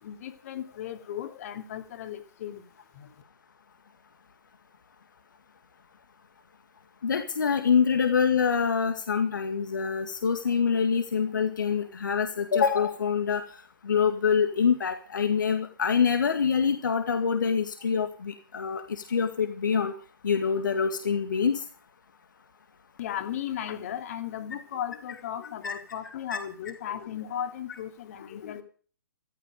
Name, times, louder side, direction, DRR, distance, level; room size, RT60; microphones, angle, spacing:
voice 1, 0.0-2.7 2.9-3.2 23.0-28.6, left 10 dB, 45° left, 6 dB, 2.6 m, -36 dB
voice 2, 7.0-13.4 13.8-19.9 20.2-21.6 25.6-25.7 26.3-26.4, left 6 dB, 65° left, 6 dB, 2.0 m, -25 dB
14.5 x 14.5 x 5.2 m, 0.42 s
figure-of-eight pair, 130°, 11 cm